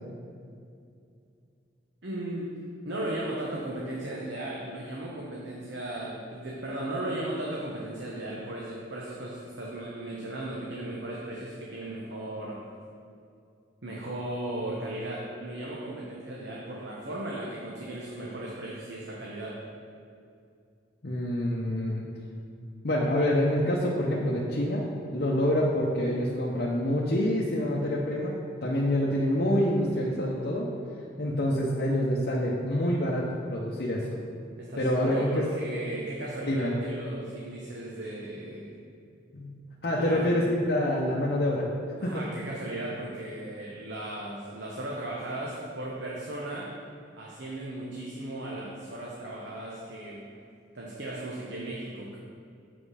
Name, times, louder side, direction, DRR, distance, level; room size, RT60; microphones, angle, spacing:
voice 1, 2.0-2.5 2.8-12.6 13.8-19.6 34.6-38.7 40.0-40.3 42.0-46.7 47.2-50.2 50.7-52.2, right 1 dB, 70° right, -4 dB, 1.0 m, -36 dB
voice 2, 21.0-22.0 22.8-24.9 25.1-28.4 28.6-30.7 31.2-34.2 34.8-35.4 36.5-36.8 39.3-39.6 39.8-41.7 42.0-42.2, left 1 dB, 55° left, -5 dB, 0.7 m, -26 dB
7.8 x 5.2 x 4.9 m, 2.4 s
head